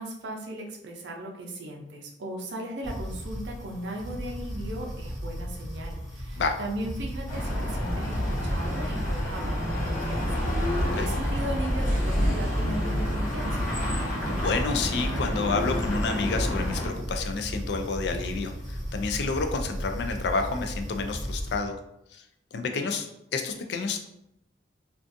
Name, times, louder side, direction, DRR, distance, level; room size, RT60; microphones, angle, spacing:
voice 1, 0.0-10.5 10.8-13.7, right 1 dB, 65° right, 0 dB, 0.5 m, -37 dB
sound 1, 2.8-21.6, equal, ahead, 0.7 m, -35 dB
sound 2, 7.3-16.9, equal, 40° left, 1.1 m, -28 dB
voice 2, 14.4-21.8 22.1-22.2 22.5-24.1, left 4 dB, 60° left, 5 dB, 0.3 m, -29 dB
2.5 x 2.3 x 2.5 m, 0.82 s
head